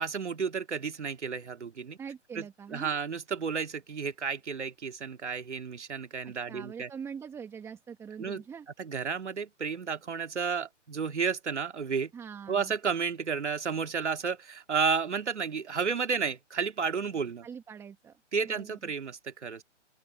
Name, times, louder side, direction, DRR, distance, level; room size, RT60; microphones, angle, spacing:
voice 1, 0.0-2.0 2.3-2.4 2.7-6.9 8.2-8.4 8.8-12.1 12.5-17.5 18.3-19.6, right 6 dB, 70° right, 2.5 m, -32 dB
voice 2, 2.0-3.0 6.2-8.7 12.1-12.7 17.4-18.2 18.4-18.8, right 7 dB, 5° right, 2.2 m, -43 dB
open air
figure-of-eight pair, 150°, 37 cm